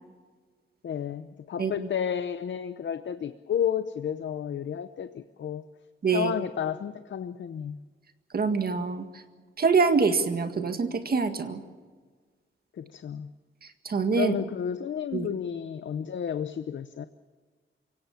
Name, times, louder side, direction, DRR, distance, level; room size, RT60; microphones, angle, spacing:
voice 1, 0.8-5.7 6.1-7.8 12.7-13.3 14.2-17.1, left 8 dB, 65° left, 11 dB, 0.8 m, -32 dB
voice 2, 8.3-9.1 9.6-11.6 13.8-14.3 15.1-15.3, right 4 dB, 50° right, 8 dB, 1.8 m, -25 dB
28.5 x 17.5 x 7.1 m, 1.5 s
wide cardioid pair, 165°, 21 cm